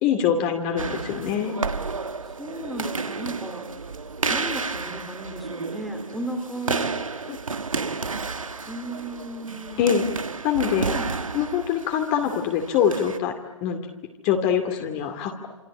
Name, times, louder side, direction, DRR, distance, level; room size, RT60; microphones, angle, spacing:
voice 1, 0.0-1.6 7.3-7.4 9.8-10.0 10.4-10.9 11.3-13.3 13.6-13.8 14.2-15.5, left 8 dB, 25° left, 5 dB, 2.5 m, -24 dB
sound 1, 0.8-13.2, right 4 dB, 85° right, 1.7 m, -31 dB
voice 2, 2.2-3.6 4.3-6.9 8.7-9.8 10.9-11.1, right 1 dB, ahead, 4 dB, 2.6 m, -34 dB
27.5 x 25.0 x 8.5 m, 1.1 s
hypercardioid pair, 145°, 17 cm